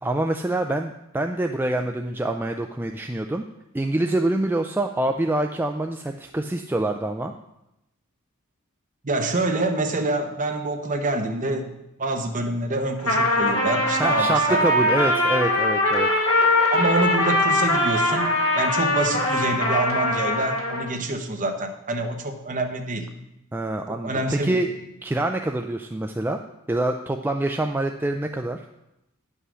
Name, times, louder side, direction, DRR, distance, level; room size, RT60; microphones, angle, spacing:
voice 1, 0.0-3.4 3.7-7.3 14.0-16.1 23.5-24.7 25.0-26.4 26.7-28.6, right 1 dB, 10° right, 4 dB, 0.3 m, -25 dB
voice 2, 9.0-11.7 12.0-14.6 16.7-23.1 23.9-24.6, right 2 dB, 35° right, 4 dB, 1.0 m, -26 dB
Trumpet, 13.0-20.9, left 1 dB, 70° left, 2.8 m, -21 dB
9.8 x 5.6 x 6.2 m, 0.88 s
head